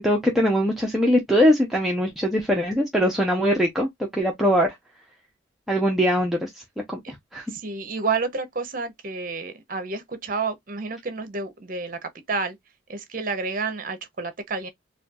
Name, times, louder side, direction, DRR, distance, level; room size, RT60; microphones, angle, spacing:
voice 1, 0.0-4.7 5.7-6.6 6.9-7.0 7.3-7.5, equal, ahead, 0.5 m, -21 dB
voice 2, 7.5-12.6 12.9-14.7, right 4 dB, 45° right, 0.7 m, -30 dB
4.3 x 2.3 x 2.3 m
head